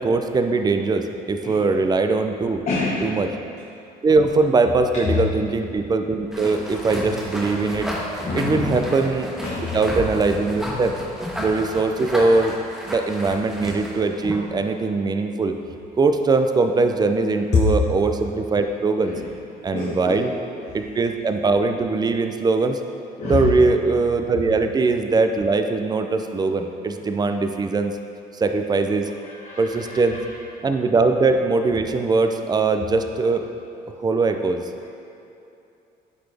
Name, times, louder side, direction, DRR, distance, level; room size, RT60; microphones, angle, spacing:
voice 1, 0.0-2.6 3.0-3.3 4.0-7.9 8.3-9.3 9.7-10.9 11.4-12.5 12.9-15.5 16.0-19.1 19.6-20.3 20.7-22.8 23.2-27.9 28.3-29.1 29.6-30.2 30.6-33.4 34.0-34.6, right 3 dB, 25° right, 6 dB, 0.4 m, -21 dB
voice 2, 2.7-3.1 8.2-8.8 9.4-9.7 17.5-17.6 19.0-19.2 19.7-20.5 23.2-23.5 29.2-30.2, left 5 dB, 40° left, -5 dB, 1.0 m, -26 dB
wet leather rub, 6.3-14.5, equal, 5° right, 1.3 m, -32 dB
10.0 x 4.1 x 3.4 m, 2.7 s
cardioid pair, 110°, 17 cm